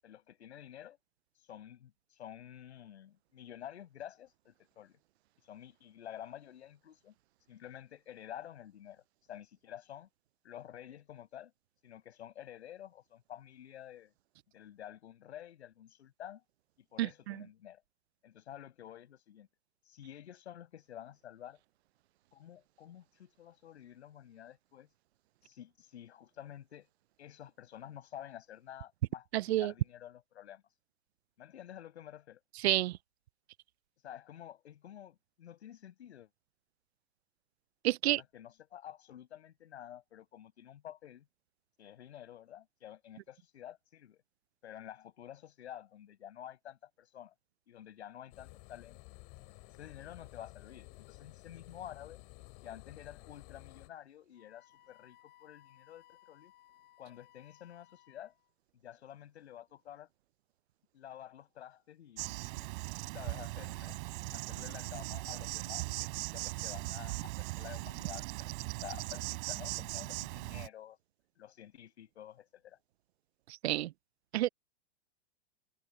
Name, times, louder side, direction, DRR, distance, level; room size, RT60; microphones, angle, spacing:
voice 1, 0.0-1.0 1.3-5.0 5.4-7.1 7.5-10.1 10.4-11.5 11.8-14.1 14.5-16.4 16.9-17.8 18.2-19.5 19.8-21.6 22.3-24.9 25.4-26.9 27.2-30.6 31.4-32.4 34.0-36.3 38.0-41.2 41.8-44.2 44.6-47.3 47.7-49.0 49.7-52.2 52.6-56.5 57.0-58.3 58.8-60.1 60.9-62.7 63.0-64.0 64.3-71.0 71.4-72.8, left 11 dB, 75° left, 7.7 m, -50 dB
voice 2, 17.0-17.3 29.3-29.7 32.6-33.0 37.8-38.2 73.6-73.9 74.3-74.5, right 15 dB, 70° right, 0.6 m, -29 dB
sound 1, 48.3-53.9, left 29 dB, 45° left, 5.4 m, -53 dB
Wind instrument woodwind instrument, 54.3-58.5, left 15 dB, 30° left, 6.6 m, -63 dB
Insect, 62.2-70.7, right 25 dB, 55° right, 3.5 m, -39 dB
hypercardioid pair, 115°, 33 cm